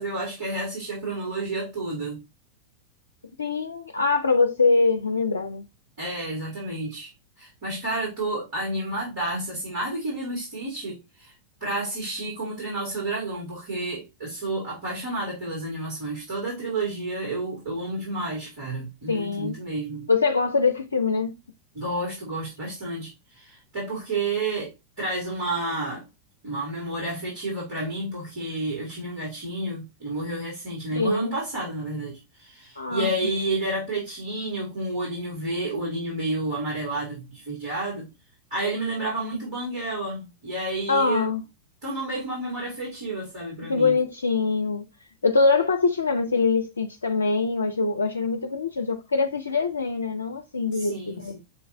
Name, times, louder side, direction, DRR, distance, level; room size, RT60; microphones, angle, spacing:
voice 1, 0.0-2.2 6.0-7.1 7.4-11.3 11.6-20.1 21.7-24.7 25.0-26.1 26.4-38.1 38.5-41.3 41.8-43.9 50.7-51.4, right 2 dB, 50° right, 2.8 m, -30 dB
voice 2, 3.4-5.7 19.1-19.6 20.1-21.3 30.9-31.4 32.8-33.3 39.3-39.4 40.9-41.4 43.6-44.8 45.2-51.4, left 4 dB, 75° left, 0.4 m, -23 dB
6.6 x 2.5 x 2.8 m
figure-of-eight pair, 90°, 0 cm